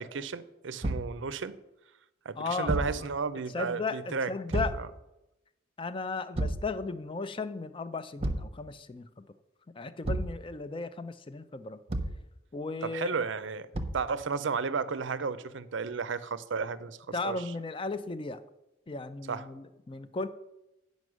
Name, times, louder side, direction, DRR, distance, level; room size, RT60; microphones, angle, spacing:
voice 1, 0.0-1.5 2.2-4.3 4.8-4.9 12.8-13.7 13.9-17.0 17.2-17.5 19.3-19.5, right 5 dB, 70° right, 15 dB, 0.5 m, -33 dB
Thump thud, 0.8-1.2 2.7-3.0 4.5-4.9 6.4-6.7 8.2-8.5 10.0-10.4 11.9-12.2 13.7-14.1, right 1 dB, 30° right, 0.7 m, -31 dB
voice 2, 2.4-3.1 3.5-4.7 5.8-9.2 9.7-11.8 12.5-13.1 17.1-18.4 18.9-20.3, left 3 dB, 25° left, 12 dB, 0.4 m, -36 dB
9.4 x 5.3 x 6.2 m, 0.93 s
head